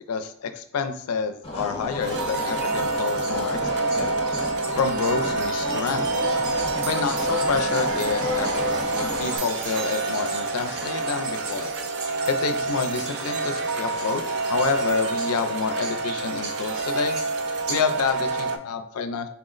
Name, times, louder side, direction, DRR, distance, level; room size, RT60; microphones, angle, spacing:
voice 1, 0.1-4.1 4.8-6.1 6.8-11.7 12.3-14.2 14.5-17.2 17.7-19.3, left 5 dB, 90° left, 8 dB, 0.4 m, -28 dB
sound 1, 1.4-9.4, left 1 dB, 30° left, 0.7 m, -31 dB
sound 2, 2.0-18.6, right 3 dB, 50° right, 0.3 m, -27 dB
sound 3, 3.1-17.9, right 3 dB, 90° right, 0.7 m, -41 dB
4.3 x 2.0 x 3.7 m, 0.69 s
head